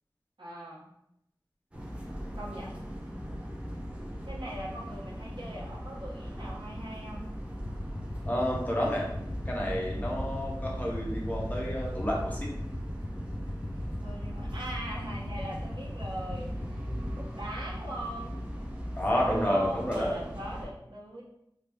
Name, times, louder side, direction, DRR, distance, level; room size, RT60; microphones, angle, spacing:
voice 1, 0.4-0.8 2.3-2.7 4.3-7.2 14.0-16.8 17.1-18.4 19.1-21.2, right 1 dB, 80° right, -6 dB, 0.8 m, -41 dB
sound 1, 1.7-20.6, equal, 15° right, 0.6 m, -40 dB
sound 2, 7.6-17.2, left 1 dB, 65° left, 0.5 m, -38 dB
voice 2, 8.3-9.1 9.5-12.5 19.0-20.2, equal, 20° left, -4 dB, 0.9 m, -30 dB
3.2 x 2.0 x 3.3 m, 0.79 s
wide cardioid pair, 45°, 8 cm